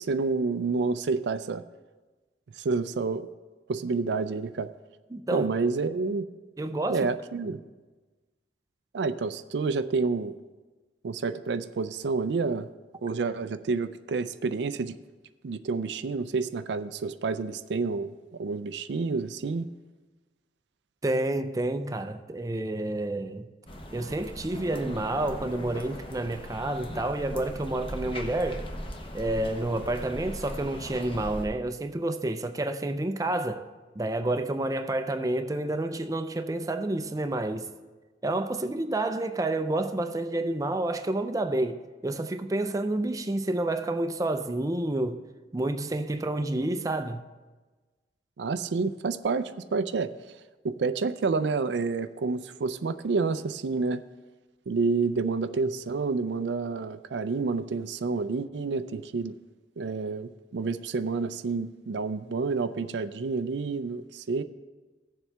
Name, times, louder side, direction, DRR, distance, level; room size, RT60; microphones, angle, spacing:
voice 1, 0.0-1.6 2.6-3.3 3.7-4.7 5.3-6.2 6.9-7.6 8.9-10.3 11.0-12.7 13.0-15.0 15.4-18.1 18.4-19.7 48.4-50.1 50.6-54.0 54.7-59.3 59.8-64.4, right 4 dB, 75° right, 0.4 m, -29 dB
voice 2, 5.1-5.5 6.6-7.1 7.4-7.6 21.0-23.5 23.9-28.7 29.1-33.7 34.0-37.7 38.2-45.2 45.5-47.2, right 2 dB, 20° right, 0.5 m, -29 dB
sound 1, 23.7-31.5, equal, 30° left, 1.0 m, -39 dB
16.5 x 7.2 x 3.4 m
head